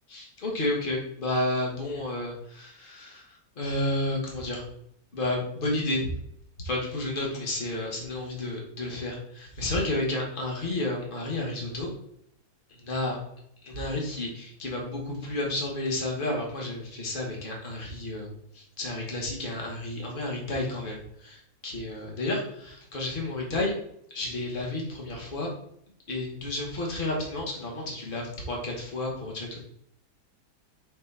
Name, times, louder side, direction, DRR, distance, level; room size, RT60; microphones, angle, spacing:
voice 1, 0.1-4.6 5.1-6.1 6.6-11.9 12.7-13.2 13.6-18.3 18.5-23.7 24.1-25.5 26.1-29.6, left 1 dB, 30° left, -1 dB, 1.5 m, -31 dB
4.3 x 4.2 x 5.5 m, 0.72 s
omnidirectional pair, 1.8 m